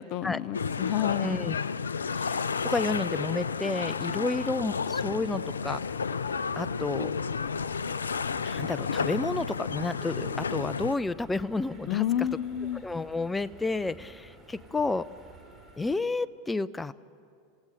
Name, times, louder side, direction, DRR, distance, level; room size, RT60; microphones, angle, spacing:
voice 1, 0.0-1.4 11.8-12.8, left 11 dB, 50° left, 16 dB, 0.8 m, -29 dB
sound 1, 0.5-10.9, left 5 dB, 80° left, 0.4 m, -31 dB
voice 2, 1.0-1.6 2.2-2.4 2.6-5.8 6.6-7.1 8.4-12.3 12.8-15.0 15.8-16.9, left 3 dB, 10° left, 17 dB, 0.6 m, -31 dB
sound 2, 4.4-16.0, right 2 dB, 10° right, 3.3 m, -50 dB
27.0 x 16.5 x 6.5 m, 2.2 s
figure-of-eight pair, 85°, 0 cm